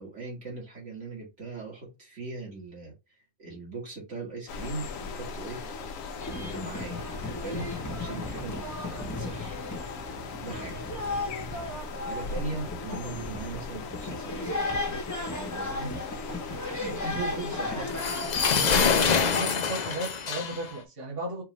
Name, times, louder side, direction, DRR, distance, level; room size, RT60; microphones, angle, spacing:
voice 1, 0.0-2.9 3.4-5.6 6.2-7.7 8.0-9.6 10.4-10.8 12.0-15.0 15.3-18.6, right 3 dB, 65° right, 1.9 m, -40 dB
sound 1, 4.5-19.4, left 4 dB, 90° left, 1.1 m, -38 dB
sound 2, 6.2-18.9, left 2 dB, 15° left, 0.7 m, -35 dB
sound 3, 17.9-20.8, left 6 dB, 55° left, 0.4 m, -25 dB
voice 2, 18.6-21.4, right 2 dB, 45° right, 1.7 m, -35 dB
4.5 x 2.5 x 3.1 m
omnidirectional pair, 1.3 m